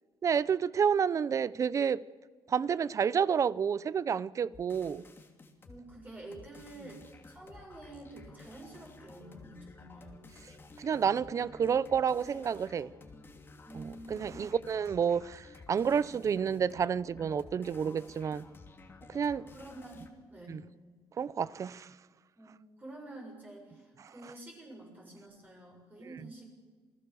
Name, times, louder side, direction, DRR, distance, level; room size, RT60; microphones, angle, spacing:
voice 1, 0.2-2.0 2.5-5.0 10.8-12.9 13.7-18.4 19.1-19.4 20.5-20.6 21.2-21.9 24.0-24.1, right 7 dB, 40° right, 0.6 m, -30 dB
sound 1, 4.5-5.8 6.3-20.1, left 3 dB, 25° left, 2.9 m, -53 dB
voice 2, 5.6-10.2 13.6-14.5 19.5-20.6 22.4-26.5, right 2 dB, 20° right, 6.7 m, -49 dB
28.5 x 19.5 x 7.0 m
cardioid pair, 135°, 8 cm